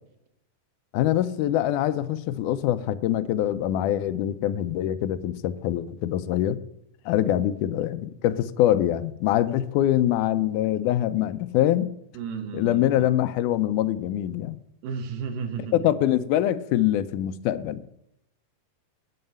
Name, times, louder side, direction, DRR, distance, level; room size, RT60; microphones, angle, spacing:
voice 1, 0.9-6.6 7.1-11.9 12.5-14.6 15.7-17.9, left 12 dB, 80° left, 1.9 m, -24 dB
voice 2, 12.1-13.1 14.8-15.8, right 6 dB, 75° right, 2.7 m, -33 dB
11.0 x 5.8 x 7.7 m
omnidirectional pair, 4.0 m